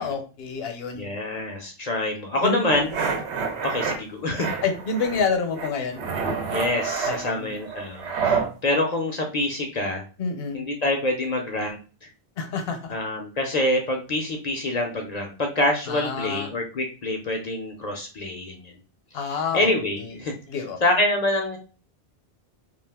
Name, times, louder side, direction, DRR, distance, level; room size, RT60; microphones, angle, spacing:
voice 1, 0.0-1.1 2.4-2.6 4.6-6.0 7.0-7.5 10.2-10.6 12.4-12.9 15.9-16.5 19.1-19.7 20.0-20.2 20.5-20.8, left 5 dB, 70° left, 6 dB, 0.8 m, -28 dB
voice 2, 0.9-2.9 3.6-4.5 6.5-10.0 10.5-12.1 12.9-18.7 19.3-20.3 20.8-21.6, left 1 dB, 55° left, 2 dB, 0.5 m, -26 dB
sound 1, 2.7-4.0 4.4-5.3 5.5-8.5, right 5 dB, 90° right, 0.9 m, -28 dB
2.4 x 2.3 x 3.4 m, 0.35 s
omnidirectional pair, 1.1 m